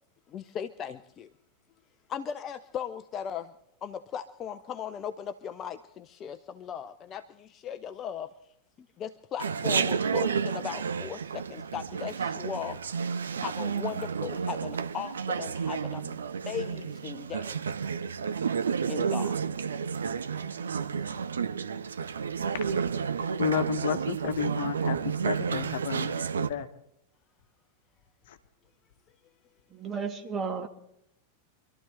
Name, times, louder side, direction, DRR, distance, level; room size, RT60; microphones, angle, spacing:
voice 1, 0.3-1.3 2.1-3.5 3.8-8.3 9.0-12.8 13.3-16.2 16.5-17.6 18.9-19.4 20.1-20.9, left 8 dB, 30° left, 10 dB, 0.6 m, -38 dB
Chatter, 9.4-26.5, right 6 dB, 70° right, 0.7 m, -31 dB
voice 2, 23.4-25.0 25.2-26.7 28.3-28.4, left 7 dB, 55° left, 9 dB, 1.2 m, -31 dB
voice 3, 29.7-30.7, right 5 dB, 20° right, 5 dB, 1.7 m, -33 dB
25.5 x 12.5 x 3.3 m, 0.77 s
figure-of-eight pair, 90°, 0 cm